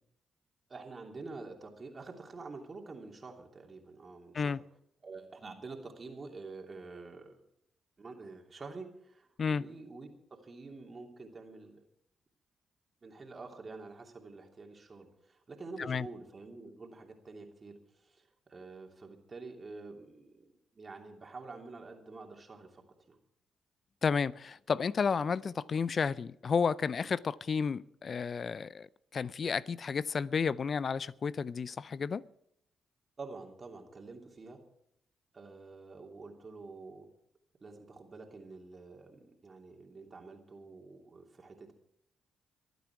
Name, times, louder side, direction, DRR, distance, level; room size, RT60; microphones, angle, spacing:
voice 1, 0.7-4.6 5.0-7.4 8.0-11.8 13.0-23.2 33.2-34.6 35.3-37.1 37.6-41.7, right 3 dB, 40° right, 2.9 m, -48 dB
voice 2, 24.0-28.9 29.1-32.2, left 5 dB, 50° left, 0.5 m, -32 dB
23.5 x 9.3 x 4.7 m
hypercardioid pair, 40°, 0 cm